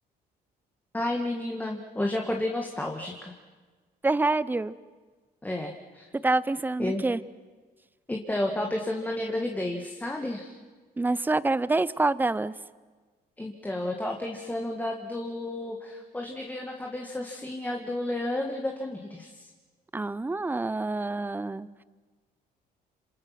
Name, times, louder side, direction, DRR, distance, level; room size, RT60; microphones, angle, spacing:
voice 1, 0.9-3.3 5.4-6.0 6.8-7.0 8.1-10.5 13.4-19.4, left 1 dB, 10° left, 2 dB, 1.9 m, -31 dB
voice 2, 4.0-4.7 6.1-7.2 11.0-12.5 19.9-21.7, right 2 dB, 10° right, 18 dB, 0.7 m, -26 dB
27.0 x 27.0 x 6.0 m, 1.4 s
cardioid pair, 110°, 17 cm